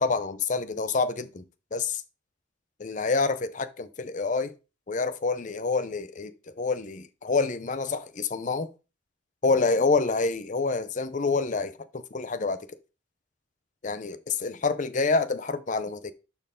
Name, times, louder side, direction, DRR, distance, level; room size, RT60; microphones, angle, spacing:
voice 1, 0.0-1.4 1.7-2.0 2.8-4.5 4.9-8.7 9.4-12.6 13.8-16.1, left 4 dB, 40° left, 0.6 m, -27 dB
12.0 x 4.5 x 3.7 m
head